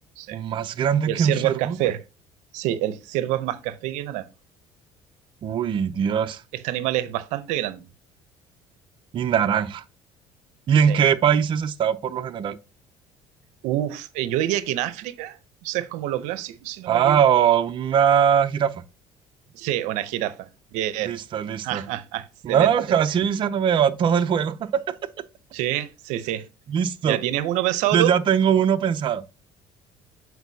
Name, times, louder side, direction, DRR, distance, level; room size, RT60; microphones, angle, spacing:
voice 1, 0.3-1.8 5.4-6.4 9.1-9.8 10.7-12.6 16.9-18.7 21.0-21.8 22.4-24.8 26.7-27.2 27.9-29.2, right 8 dB, 40° right, 0.5 m, -21 dB
voice 2, 1.1-2.0 2.5-4.3 6.5-7.8 10.9-11.0 13.6-15.4 15.6-17.2 19.5-21.1 21.6-22.7 25.5-26.4 27.1-28.1, right 13 dB, 80° right, 0.6 m, -27 dB
8.1 x 4.5 x 2.7 m
cardioid pair, 110°, 12 cm